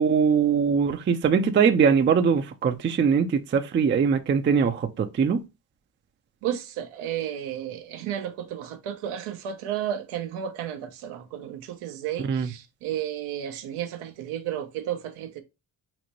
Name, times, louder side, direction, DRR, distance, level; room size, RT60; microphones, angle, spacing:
voice 1, 0.0-5.4 12.2-12.5, right 6 dB, 25° right, 0.4 m, -22 dB
voice 2, 6.4-15.4, right 10 dB, 80° right, 0.7 m, -33 dB
4.1 x 2.1 x 2.9 m
supercardioid pair, 55°, 49 cm